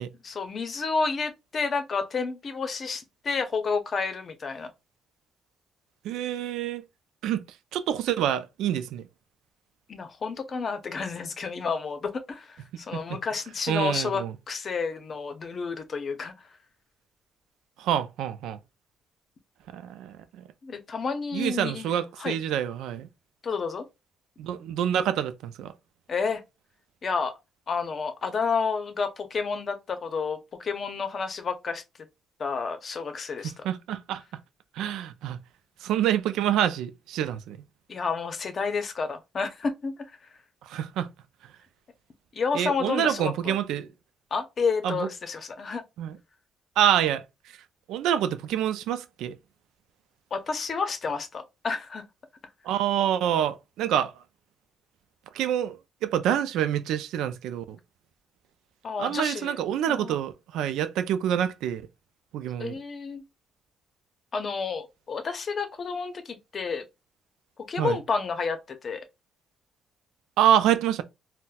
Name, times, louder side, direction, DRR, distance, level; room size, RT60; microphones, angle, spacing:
voice 1, 0.2-4.7 9.9-16.3 20.6-21.9 22.2-22.4 23.4-23.9 26.1-26.4 27.0-27.3 27.7-31.8 32.4-33.6 37.9-39.9 42.3-43.5 44.3-45.8 50.3-52.0 58.8-59.6 59.9-60.2 62.6-63.2 64.3-66.8 67.7-69.0, left 5 dB, 45° left, 0.6 m, -30 dB
voice 2, 6.0-6.8 7.2-7.4 7.7-9.1 12.9-13.0 13.7-14.3 17.8-18.6 19.7-20.4 21.3-23.1 24.4-25.7 33.6-34.2 34.8-35.4 35.8-37.6 40.6-41.1 42.5-43.9 44.8-45.1 46.0-46.2 46.8-47.2 47.9-49.4 52.6-54.1 55.3-57.8 59.0-61.9 62.3-62.7 67.8-68.0 70.4-71.0, right 10 dB, 90° right, 0.3 m, -27 dB
4.0 x 2.1 x 2.2 m
cardioid pair, 90°, 0 cm